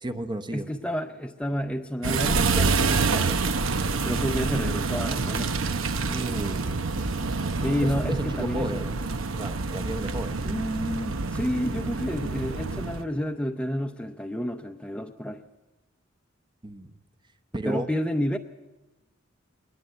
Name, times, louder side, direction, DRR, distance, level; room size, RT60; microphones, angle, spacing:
voice 1, 0.0-0.7 2.5-2.7 3.9-4.1 6.1-6.9 7.8-9.0 9.3-10.4 16.6-16.9 17.5-17.9, right 1 dB, 20° right, 8 dB, 0.9 m, -34 dB
voice 2, 0.5-3.5 4.0-5.6 7.6-8.9 10.4-15.4 17.7-18.4, equal, 5° left, 6 dB, 0.6 m, -30 dB
sound 1, 2.0-13.0, right 4 dB, 75° right, 0.9 m, -27 dB
21.0 x 19.5 x 7.9 m, 1.1 s
head